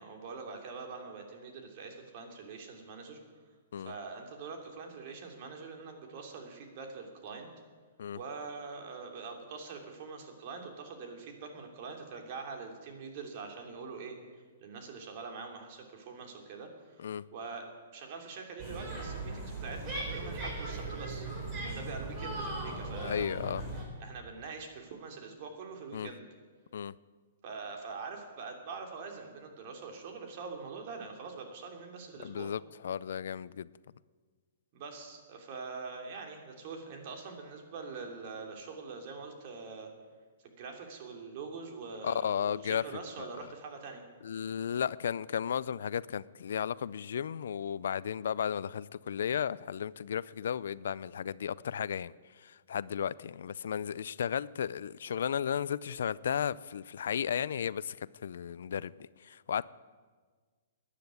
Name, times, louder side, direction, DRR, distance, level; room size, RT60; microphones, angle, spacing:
voice 1, 0.0-3.2 3.9-7.5 8.1-14.2 14.6-17.7 17.9-21.3 21.6-23.3 24.0-26.2 27.4-32.5 34.7-39.9 40.6-44.0, right 4 dB, 45° right, 3.1 m, -44 dB
sound 1, 18.6-23.8, right 2 dB, 25° right, 5.4 m, -38 dB
voice 2, 23.0-23.6 25.9-26.1 26.7-26.9 32.2-33.7 42.0-42.8 43.2-43.3 44.2-52.1 52.4-58.0 58.2-59.7, left 8 dB, 70° left, 0.4 m, -34 dB
14.5 x 10.0 x 9.4 m
hypercardioid pair, 145°, 0 cm